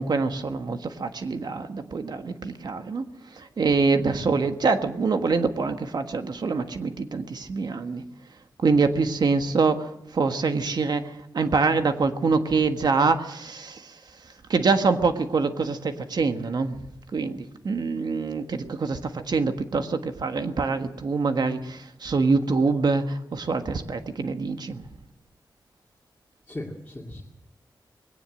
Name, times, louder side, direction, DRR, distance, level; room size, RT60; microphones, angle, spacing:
voice 1, 0.0-3.1 3.3-8.0 8.6-13.9 14.5-16.8 17.1-24.8, right 4 dB, 65° right, 7 dB, 1.5 m, -25 dB
voice 2, 4.0-4.3 26.5-27.2, left 1 dB, 15° left, -2 dB, 2.5 m, -38 dB
21.0 x 18.0 x 7.6 m, 0.81 s
wide cardioid pair, 135°, 8 cm